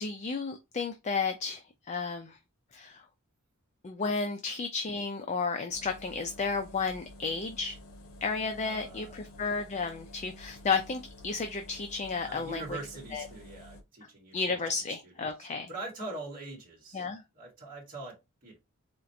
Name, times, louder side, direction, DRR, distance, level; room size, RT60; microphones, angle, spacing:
voice 1, 0.0-2.4 2.7-3.0 3.8-7.8 8.2-12.8 13.1-13.3 14.3-15.7 16.9-17.2, left 4 dB, 35° left, 0.4 m, -33 dB
sound 1, 5.7-13.8, left 1 dB, 75° left, 0.9 m, -50 dB
voice 2, 8.6-9.1 12.2-14.6 15.0-17.1 17.3-18.6, right 2 dB, 40° right, 1.3 m, -43 dB
4.4 x 2.5 x 2.6 m
head